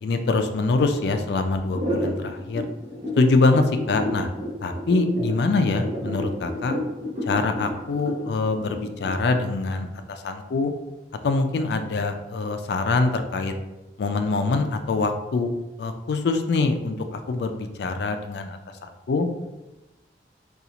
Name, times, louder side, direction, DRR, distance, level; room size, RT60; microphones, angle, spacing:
voice 1, 0.0-2.6 3.2-4.3 4.6-6.8 7.3-10.7 11.2-13.5 14.0-15.5 15.8-19.3, left 3 dB, 65° left, 7 dB, 0.3 m, -24 dB
sound 1, 1.7-9.5, equal, 35° right, 1.0 m, -30 dB
3.8 x 2.3 x 2.8 m, 1.1 s
head